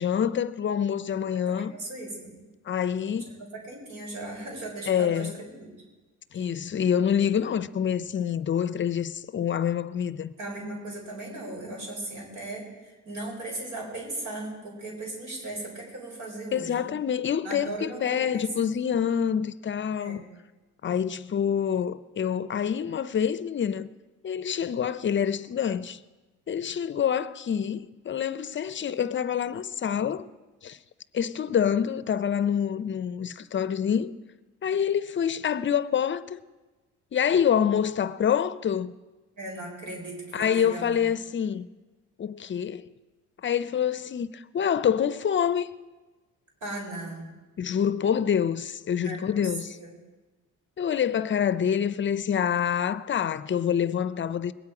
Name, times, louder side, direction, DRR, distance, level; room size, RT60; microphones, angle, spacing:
voice 1, 0.0-1.7 2.7-3.3 4.9-5.3 6.3-10.3 16.5-20.2 20.8-23.9 24.2-26.0 26.5-30.2 30.6-30.8 31.1-34.1 34.6-36.4 37.1-38.9 40.3-41.7 42.2-42.9 43.4-45.7 47.6-49.7 50.8-54.5, left 8 dB, 40° left, 0.5 m, -26 dB
voice 2, 1.3-2.3 3.2-5.7 6.3-6.4 10.4-16.9 17.4-18.7 19.9-20.2 39.3-41.1 46.6-47.2 49.0-50.0, right 2 dB, 80° right, 4.9 m, -37 dB
21.0 x 9.7 x 4.8 m
cardioid pair, 90°, 30 cm